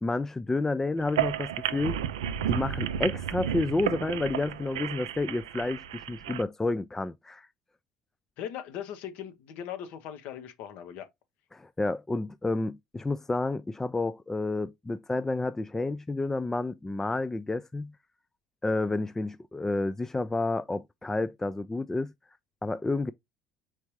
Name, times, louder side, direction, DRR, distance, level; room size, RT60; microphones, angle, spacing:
voice 1, 0.0-2.0 2.4-7.5 11.5-17.9 18.6-22.1 22.6-23.1, left 2 dB, 15° left, 0.3 m, -30 dB
sound 1, 1.0-6.4, right 10 dB, 80° right, 0.3 m, -32 dB
voice 2, 8.4-11.1, left 9 dB, 65° left, 0.8 m, -39 dB
4.5 x 3.5 x 3.0 m
hypercardioid pair, 60°, 3 cm